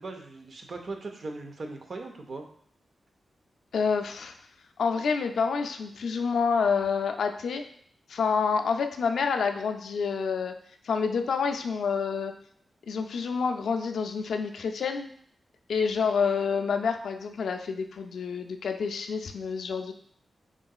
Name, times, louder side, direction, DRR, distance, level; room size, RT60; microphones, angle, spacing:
voice 1, 0.0-2.4, right 3 dB, 45° right, 4 dB, 0.5 m, -39 dB
voice 2, 3.7-4.3 4.8-7.6 8.1-10.5 10.8-12.3 12.9-15.1 15.7-19.9, left 5 dB, 80° left, 5 dB, 0.3 m, -28 dB
3.7 x 3.6 x 2.3 m, 0.65 s
wide cardioid pair, 180°, 0 cm